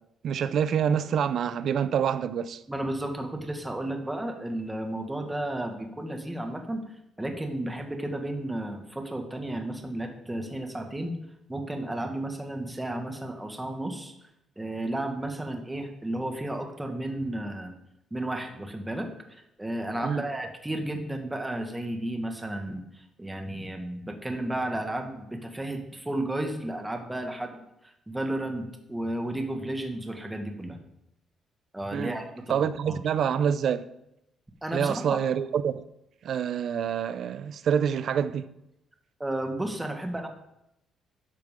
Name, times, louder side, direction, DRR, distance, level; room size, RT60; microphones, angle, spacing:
voice 1, 0.2-2.6 20.0-20.3 31.9-32.1 32.5-33.8 34.7-35.8 36.2-38.5, right 8 dB, 65° right, 0.6 m, -26 dB
voice 2, 2.7-11.2 11.5-14.1 14.6-17.7 18.1-30.8 31.7-33.0 34.6-35.2 39.2-40.3, right 1 dB, 10° right, 1.7 m, -33 dB
12.0 x 7.5 x 3.7 m
cardioid pair, 90°, 0 cm